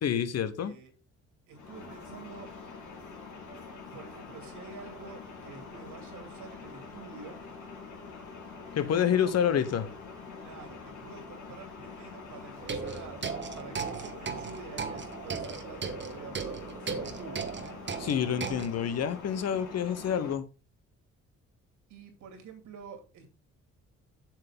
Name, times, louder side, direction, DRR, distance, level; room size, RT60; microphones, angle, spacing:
voice 1, 0.0-0.8 8.7-9.9 18.0-20.4, left 8 dB, 55° left, 12 dB, 1.2 m, -28 dB
voice 2, 0.6-0.9 1.5-2.5 3.9-7.4 8.8-9.3 10.4-17.8 21.9-23.3, right 5 dB, 80° right, 5 dB, 2.6 m, -48 dB
sound 1, 1.5-20.4, left 4 dB, 75° left, 3.5 m, -45 dB
sound 2, 12.6-18.7, right 5 dB, 40° right, 1.3 m, -37 dB
7.5 x 7.2 x 3.7 m, 0.31 s
cardioid pair, 90°, 30 cm